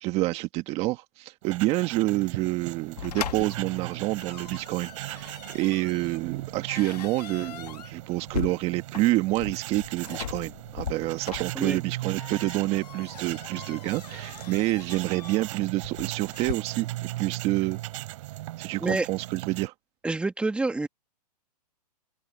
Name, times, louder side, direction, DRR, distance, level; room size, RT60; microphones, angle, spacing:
voice 1, 0.0-16.9 17.2-17.8 18.6-19.7, right 19 dB, 30° right, 1.5 m, -28 dB
sound 1, 1.4-19.7, right 16 dB, 50° right, 5.2 m, -38 dB
sound 2, 3.0-16.5, left 10 dB, 75° left, 1.3 m, -40 dB
voice 2, 20.0-20.9, right 3 dB, 5° right, 2.0 m, -27 dB
hypercardioid pair, 140°, 21 cm